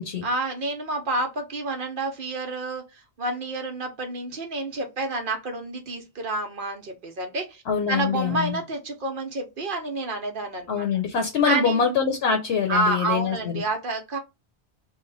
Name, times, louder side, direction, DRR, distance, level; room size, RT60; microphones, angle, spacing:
voice 1, 0.2-7.6 7.9-10.9 11.4-11.9 12.7-14.2, right 2 dB, 55° right, 0.9 m, -29 dB
voice 2, 7.7-8.6 10.7-13.6, left 6 dB, 70° left, 0.9 m, -24 dB
3.1 x 2.1 x 3.9 m
omnidirectional pair, 1.1 m